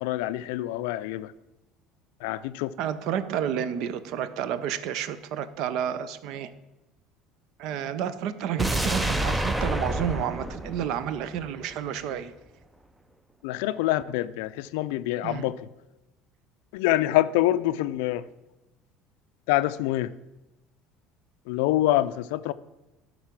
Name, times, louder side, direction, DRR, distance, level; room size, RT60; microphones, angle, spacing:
voice 1, 0.0-1.3 2.2-2.7 13.4-15.7 16.7-18.2 19.5-20.1 21.5-22.5, left 15 dB, 85° left, 0.3 m, -26 dB
voice 2, 2.8-6.5 7.6-12.3 15.2-15.5, right 9 dB, 65° right, 0.6 m, -30 dB
sound 1, 8.6-11.7 12.0-12.1, right 1 dB, 5° right, 0.5 m, -28 dB
11.5 x 4.0 x 5.9 m
supercardioid pair, 115°, 0 cm